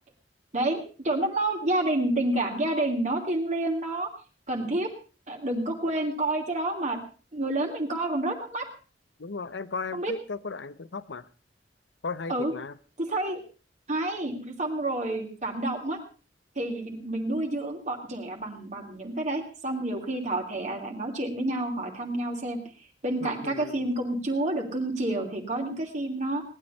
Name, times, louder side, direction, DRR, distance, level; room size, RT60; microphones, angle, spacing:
voice 1, 0.5-4.1 4.5-4.9 5.3-7.0 7.3-8.7 9.9-10.1 12.3-12.5 13.0-13.4 13.9-16.0 16.5-22.6 23.0-26.4, right 1 dB, 40° right, 1 dB, 2.8 m, -29 dB
voice 2, 9.2-11.3 12.0-12.7 23.2-23.9, left 4 dB, 90° left, 16 dB, 0.9 m, -36 dB
18.5 x 11.0 x 5.5 m, 0.37 s
head